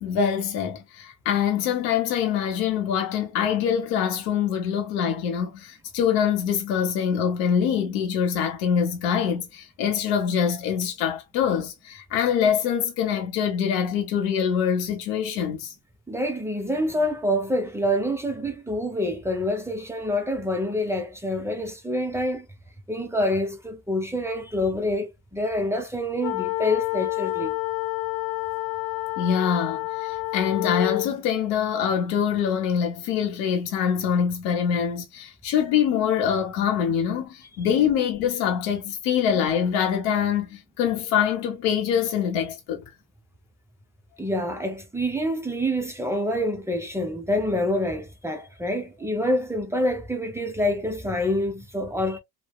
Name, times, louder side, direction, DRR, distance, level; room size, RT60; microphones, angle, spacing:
voice 1, 0.0-15.7 29.2-42.8, left 8 dB, 85° left, 0.9 m, -24 dB
voice 2, 16.1-22.5 22.9-27.6 44.2-52.2, left 1 dB, 10° right, 0.5 m, -26 dB
sound 1, 26.2-31.1, left 23 dB, 70° left, 0.5 m, -28 dB
3.1 x 2.1 x 2.2 m
cardioid pair, 110°, 35 cm